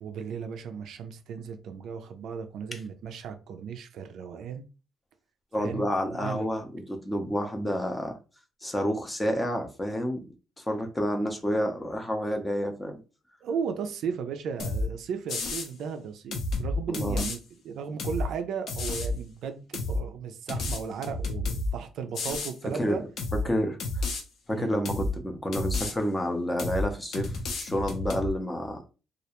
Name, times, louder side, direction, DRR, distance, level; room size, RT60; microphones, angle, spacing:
voice 1, 0.0-4.7 5.6-6.5 13.4-23.0 24.5-24.7, right 6 dB, 65° right, 0.3 m, -36 dB
voice 2, 5.5-8.2 8.6-10.2 10.6-13.0 16.9-17.3 22.7-23.0 23.4-23.8 24.5-28.8, equal, 10° left, 0.5 m, -29 dB
sound 1, 14.6-14.9 15.3-15.7 16.3-17.4 18.0-18.3 18.7-19.1 19.7-20.0 20.5-21.7 22.1-22.5 23.2-23.4 23.8-24.2 24.8-25.1 25.5-25.9 26.6-26.9 27.1-28.3, left 2 dB, 55° left, 0.6 m, -30 dB
2.3 x 2.1 x 2.8 m
cardioid pair, 145°, 0 cm